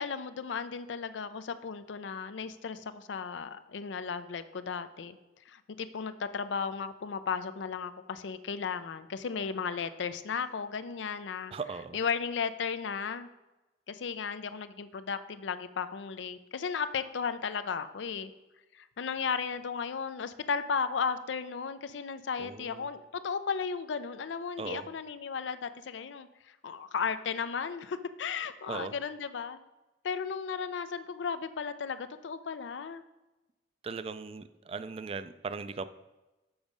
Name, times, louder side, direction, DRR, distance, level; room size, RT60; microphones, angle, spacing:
voice 1, 0.0-5.2 5.5-11.5 11.9-13.3 13.9-18.3 18.7-29.6 30.0-33.0, left 6 dB, 90° left, 11 dB, 0.5 m, -35 dB
voice 2, 11.5-12.0 22.4-22.8 24.6-24.8 28.7-28.9 33.8-35.8, right 4 dB, 30° right, 12 dB, 0.3 m, -38 dB
7.1 x 4.9 x 5.2 m, 1.0 s
head